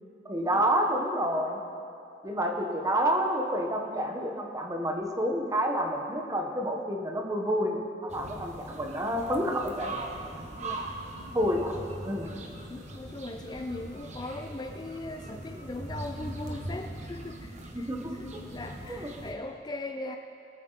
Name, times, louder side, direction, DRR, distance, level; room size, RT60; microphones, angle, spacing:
voice 1, 0.2-1.6 2.2-10.0 11.3-12.3 17.7-18.1 18.8-19.1, equal, 20° right, 1 dB, 1.3 m, -29 dB
sound 1, 8.1-19.3, right 2 dB, 40° right, 1.3 m, -41 dB
voice 2, 12.7-17.9 18.2-20.2, left 2 dB, 20° left, 5 dB, 0.4 m, -39 dB
21.5 x 9.2 x 4.1 m, 2.6 s
head